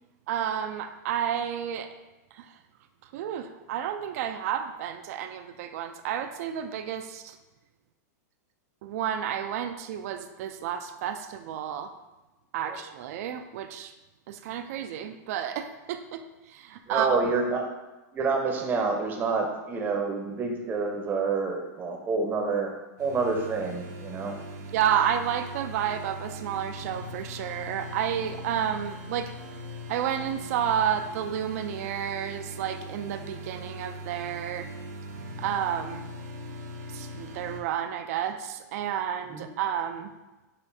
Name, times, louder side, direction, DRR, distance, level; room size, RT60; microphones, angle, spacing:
voice 1, 0.3-1.9 2.3-2.6 3.0-7.4 8.8-11.9 12.5-13.9 14.3-17.1 24.7-29.3 29.9-34.7 35.4-36.0 36.9-40.1, right 9 dB, 60° right, 9 dB, 0.3 m, -31 dB
voice 2, 16.9-17.7 18.1-22.7 23.0-24.4 39.3-39.4, right 4 dB, 20° right, 2 dB, 0.6 m, -28 dB
sound 1, 23.0-37.6, equal, 80° right, 0.7 m, -40 dB
6.7 x 2.5 x 2.7 m, 1.1 s
supercardioid pair, 135°, 9 cm